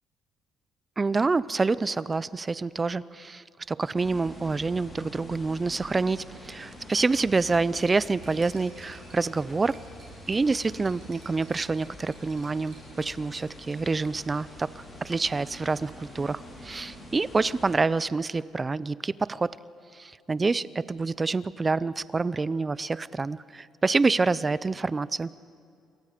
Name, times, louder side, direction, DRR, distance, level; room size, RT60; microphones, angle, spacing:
voice 1, 1.0-3.4 3.7-9.8 10.3-14.7 15.0-19.5 20.3-25.3, right 3 dB, 20° right, 18 dB, 0.4 m, -27 dB
sound 1, 3.9-17.8, equal, 20° left, 5.5 m, -46 dB
Cutlery silverware, 7.8-14.1, right 4 dB, 40° right, 5.8 m, -55 dB
28.0 x 23.5 x 5.1 m, 2.4 s
cardioid pair, 150°, 0 cm